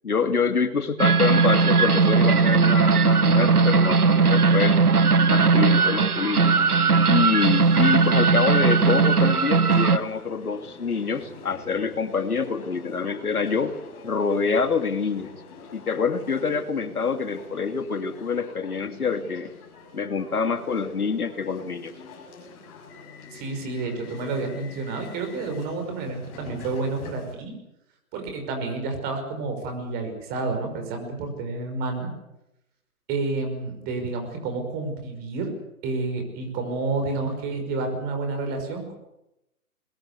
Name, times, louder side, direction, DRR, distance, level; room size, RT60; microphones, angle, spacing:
voice 1, 0.0-4.8 5.3-6.5 7.1-13.8 14.0-15.3 15.7-19.5 19.9-21.9, left 5 dB, 75° left, 9 dB, 2.8 m, -26 dB
sound 1, 1.0-10.0, right 4 dB, 85° right, 1.5 m, -18 dB
sound 2, 7.4-27.3, left 4 dB, 25° left, 6.8 m, -45 dB
voice 2, 23.3-27.5 28.1-32.1 33.1-35.5 35.8-38.9, right 3 dB, 20° right, 5 dB, 5.5 m, -30 dB
21.5 x 21.5 x 8.3 m, 0.88 s
figure-of-eight pair, 145°, 44 cm